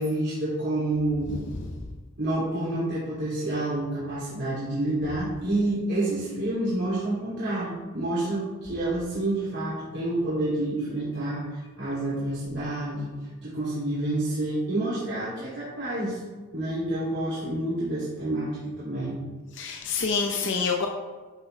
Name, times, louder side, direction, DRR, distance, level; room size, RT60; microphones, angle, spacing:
voice 1, 0.0-1.3 2.2-13.1 13.4-16.2 16.5-19.2, right 1 dB, 50° right, -10 dB, 2.8 m, -28 dB
voice 2, 1.3-1.7 19.5-20.9, left 5 dB, 55° left, 1 dB, 0.8 m, -27 dB
11.5 x 7.4 x 3.4 m, 1.3 s
head